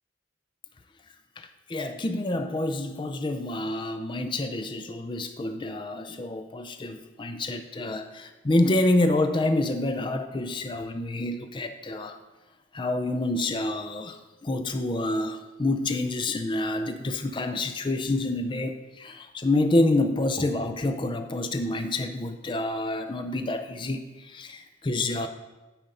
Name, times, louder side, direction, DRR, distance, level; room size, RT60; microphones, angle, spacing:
voice 1, 1.4-12.2 12.7-25.3, left 2 dB, 25° left, 7 dB, 0.4 m, -28 dB
9.0 x 4.3 x 5.2 m, 1.1 s
head